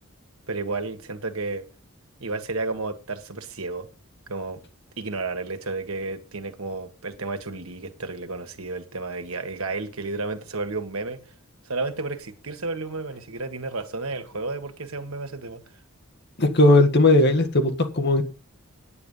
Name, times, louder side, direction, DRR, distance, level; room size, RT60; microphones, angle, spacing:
voice 1, 0.5-1.7 2.2-3.9 4.3-4.6 5.0-11.3 11.6-15.6, right 3 dB, 85° right, 1.8 m, -32 dB
voice 2, 16.4-18.2, left 2 dB, 55° left, 1.7 m, -17 dB
9.4 x 9.2 x 5.5 m
head